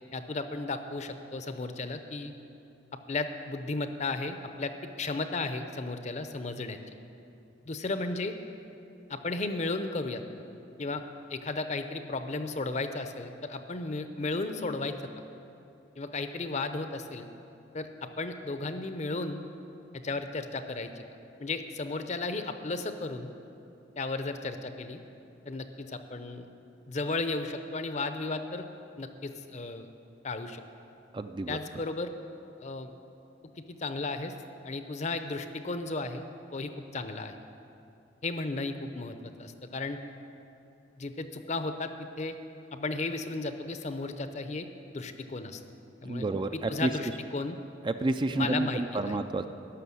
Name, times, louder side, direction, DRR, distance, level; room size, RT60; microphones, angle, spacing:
voice 1, 0.1-2.3 3.1-6.8 7.7-8.4 9.1-10.2 10.8-11.0 11.3-15.0 16.0-17.3 17.7-19.4 19.9-20.9 21.4-23.3 24.0-25.0 25.5-26.5 26.9-28.7 29.0-29.9 30.2-30.6 31.5-32.1 32.6-32.9 33.8-34.3 34.6-36.2 36.5-37.3 38.2-40.0 41.0-42.3 42.7-44.7 44.9-45.6 46.0-47.6 48.2-49.2, left 3 dB, 40° left, 8 dB, 0.7 m, -34 dB
voice 2, 31.1-31.6 46.0-46.9 47.8-49.5, right 2 dB, 25° right, 8 dB, 0.4 m, -30 dB
12.5 x 6.7 x 9.6 m, 2.7 s
head